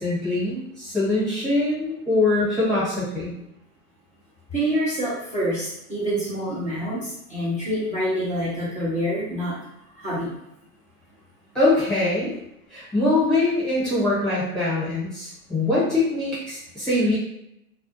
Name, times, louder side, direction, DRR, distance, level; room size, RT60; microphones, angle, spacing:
voice 1, 0.0-3.3 11.5-12.3 12.7-17.2, left 2 dB, ahead, -11 dB, 0.9 m, -23 dB
voice 2, 4.5-9.5 9.9-10.3, equal, 15° right, -12 dB, 0.5 m, -26 dB
2.3 x 2.2 x 2.6 m, 0.81 s
hypercardioid pair, 140°, 45 cm